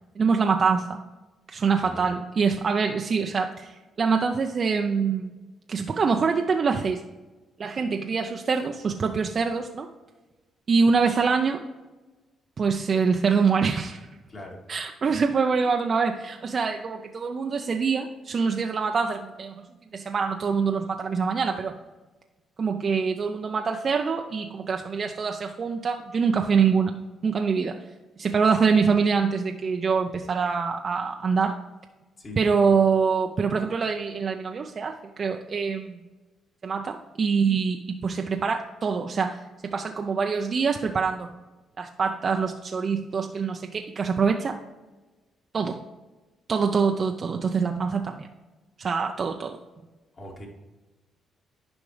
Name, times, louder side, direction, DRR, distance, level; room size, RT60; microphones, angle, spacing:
voice 1, 0.2-1.0 1.5-5.3 5.7-7.0 7.6-9.9 10.7-11.6 12.6-14.1 14.7-19.7 19.9-21.7 22.6-27.0 27.2-27.8 28.2-31.5 32.4-36.0 36.6-41.3 41.8-44.6 45.5-45.8 46.5-48.3 48.8-49.6, right 5 dB, 45° right, 4 dB, 0.5 m, -25 dB
voice 2, 14.3-14.6 32.2-32.4 50.1-50.5, left 1 dB, 40° left, -2 dB, 2.3 m, -41 dB
10.5 x 5.1 x 3.3 m, 1.2 s
cardioid pair, 90°, 0 cm